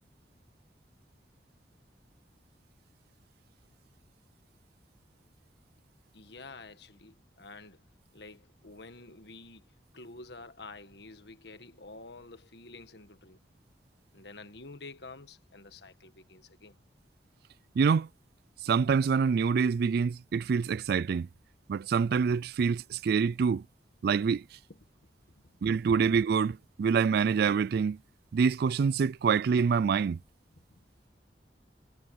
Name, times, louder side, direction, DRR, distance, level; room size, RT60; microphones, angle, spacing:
voice 1, 6.1-7.8 8.1-9.7 9.9-13.4 14.1-16.8 24.8-24.9 25.4-25.5 30.6-30.8, left 3 dB, 65° left, 1.7 m, -49 dB
voice 2, 17.8-18.1 18.6-21.3 21.7-23.6 24.0-24.4 25.6-28.0 28.3-30.2, right 6 dB, 60° right, 0.3 m, -26 dB
head